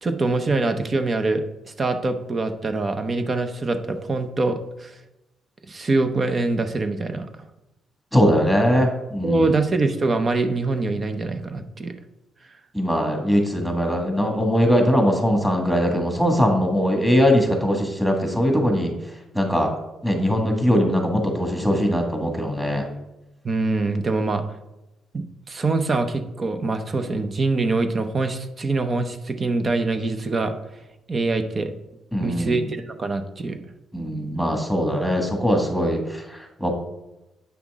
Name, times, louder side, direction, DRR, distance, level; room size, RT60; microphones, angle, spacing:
voice 1, 0.0-5.0 5.7-7.3 9.2-11.9 23.4-24.4 25.1-30.5 31.1-31.7 32.2-33.6, right 3 dB, 35° right, 8 dB, 0.8 m, -24 dB
voice 2, 8.1-9.5 12.7-18.9 19.3-19.7 20.0-22.9 32.1-32.6 33.9-36.7, equal, 5° right, 2 dB, 1.8 m, -21 dB
8.3 x 5.9 x 3.6 m, 0.97 s
cardioid pair, 90°, 0 cm